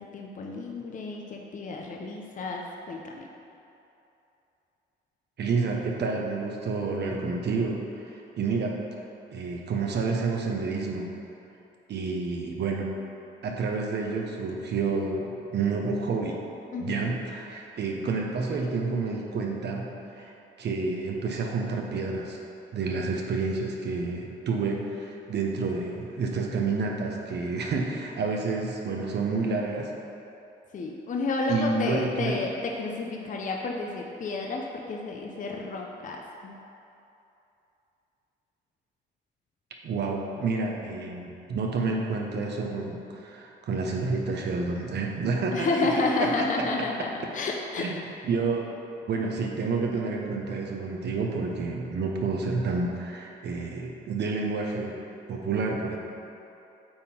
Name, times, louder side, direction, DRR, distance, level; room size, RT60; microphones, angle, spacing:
voice 1, 0.0-3.3 16.7-17.2 30.7-36.5 45.5-47.9, left 3 dB, 40° left, 0 dB, 0.6 m, -31 dB
voice 2, 5.4-8.8 9.3-11.1 11.9-12.9 13.4-16.4 16.8-20.3 20.6-22.4 22.7-29.9 31.5-32.4 39.8-45.7 47.8-47.9 48.3-48.8 49.1-54.9 55.3-56.0, right 4 dB, 60° right, 0 dB, 0.8 m, -29 dB
8.7 x 3.7 x 4.3 m, 2.8 s
cardioid pair, 90°, 20 cm